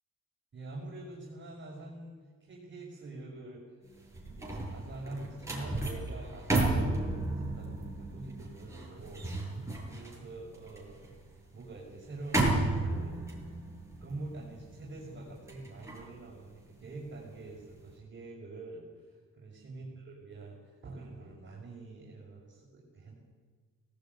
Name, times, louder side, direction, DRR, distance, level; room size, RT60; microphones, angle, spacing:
voice 1, 0.5-3.8 4.2-9.3 9.9-11.1 11.5-13.3 14.0-23.1, right 2 dB, 40° right, -4 dB, 6.2 m, -45 dB
sound 1, 3.9-17.2 17.6-17.9, right 2 dB, 10° right, 7.9 m, -34 dB
19.0 x 18.5 x 9.5 m, 1.5 s
cardioid pair, 90°, 30 cm